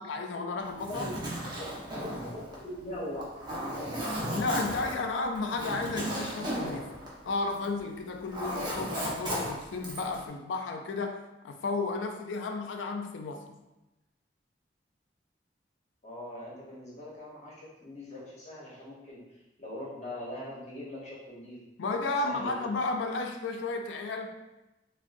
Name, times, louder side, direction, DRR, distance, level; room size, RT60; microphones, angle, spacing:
voice 1, 0.1-1.1 4.3-6.9 7.2-13.6 21.8-24.3, left 3 dB, 90° left, 5 dB, 0.4 m, -33 dB
Zipper (clothing), 0.7-7.8 8.1-10.2, equal, 25° right, 0.7 m, -35 dB
voice 2, 2.0-3.3 16.0-21.6 22.2-22.7, left 1 dB, 40° left, -6 dB, 0.8 m, -41 dB
3.5 x 2.2 x 2.5 m, 0.99 s
head